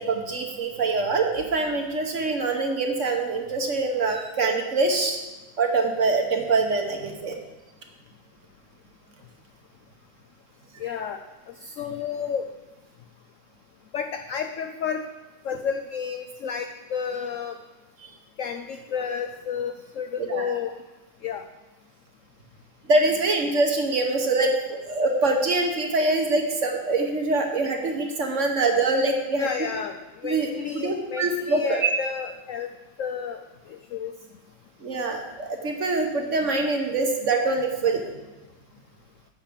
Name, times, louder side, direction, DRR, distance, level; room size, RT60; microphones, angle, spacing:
voice 1, 0.0-5.2 5.6-7.4 18.0-18.1 20.2-20.4 22.9-29.5 30.2-31.9 34.8-38.0, right 3 dB, 50° right, 3 dB, 1.2 m, -24 dB
voice 2, 10.8-11.2 11.6-12.5 13.9-15.0 15.4-17.6 18.4-20.7 21.2-21.4 29.3-29.9 30.2-32.7 33.0-33.4 33.7-34.1, left 7 dB, 75° left, 7 dB, 0.7 m, -31 dB
9.4 x 7.3 x 5.2 m, 1.1 s
omnidirectional pair, 1.9 m